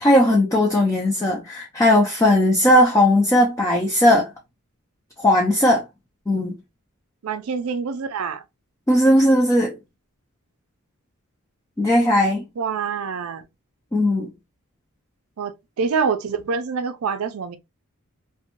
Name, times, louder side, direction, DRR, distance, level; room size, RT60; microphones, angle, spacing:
voice 1, 0.0-4.3 5.2-5.8 6.3-6.5 8.9-9.7 11.8-12.4 13.9-14.3, left 1 dB, 15° left, 0.3 m, -17 dB
voice 2, 7.2-8.4 12.6-13.5 15.4-17.6, right 5 dB, 70° right, 0.4 m, -26 dB
2.6 x 2.1 x 2.8 m
head